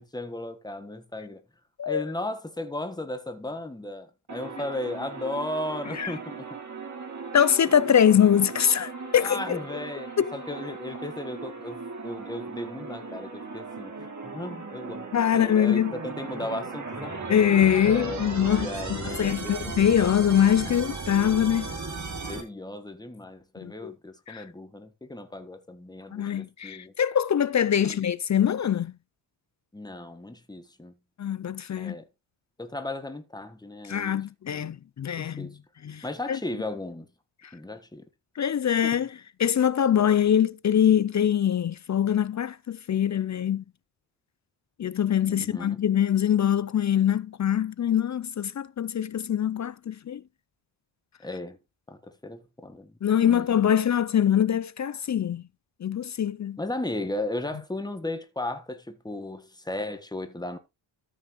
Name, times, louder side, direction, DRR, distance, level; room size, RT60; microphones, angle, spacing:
voice 1, 0.0-1.4 1.8-6.5 9.1-17.2 17.8-19.8 20.6-20.8 22.3-26.9 27.8-28.0 29.7-30.9 31.8-32.1 32.6-34.2 34.5-34.7 35.2-35.6 36.0-37.1 37.5-38.1 38.8-39.0 45.2-45.8 51.2-51.6 51.9-53.6 56.6-60.6, left 1 dB, 10° left, 1.3 m, -36 dB
sound 1, 4.3-22.4, right 3 dB, 35° right, 2.6 m, -37 dB
voice 2, 7.3-9.6 10.2-10.3 15.1-15.9 17.3-21.7 23.6-23.9 24.3-24.4 26.1-28.9 31.2-32.0 33.9-35.5 35.8-36.4 37.4-37.5 38.4-43.6 44.8-50.2 53.0-55.4 55.8-56.6, left 9 dB, 40° left, 0.4 m, -23 dB
13.5 x 6.3 x 3.0 m
wide cardioid pair, 105°, 49 cm